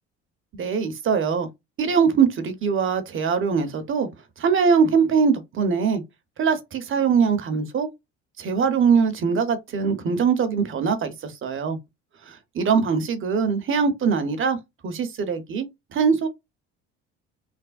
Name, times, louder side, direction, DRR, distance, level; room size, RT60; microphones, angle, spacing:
voice 1, 0.5-1.5 1.8-4.1 4.4-6.0 6.4-7.9 8.4-11.8 12.3-14.6 14.8-16.3, right 6 dB, 45° right, 0.8 m, -22 dB
3.4 x 2.1 x 2.3 m
supercardioid pair, 80°, 30 cm